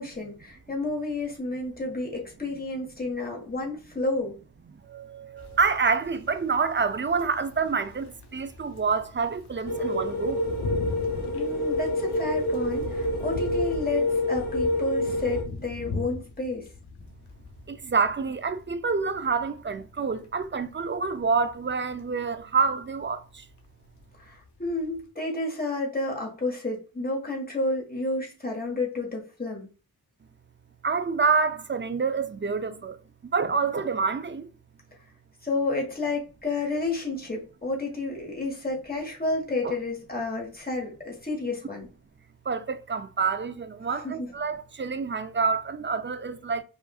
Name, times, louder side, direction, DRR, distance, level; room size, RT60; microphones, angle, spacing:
voice 1, 0.0-4.3 11.3-16.7 24.2-29.7 35.4-41.9 44.0-44.3, left 2 dB, 25° left, 1.5 m, -31 dB
voice 2, 4.9-10.4 17.7-23.2 30.8-33.0 33.3-34.5 39.6-39.7 42.5-46.6, right 5 dB, 30° right, 0.5 m, -27 dB
sound 1, 5.4-25.1, left 3 dB, 85° left, 0.8 m, -41 dB
sound 2, 9.7-15.4, left 1 dB, 65° left, 1.2 m, -27 dB
4.9 x 2.5 x 2.4 m
wide cardioid pair, 55°, 39 cm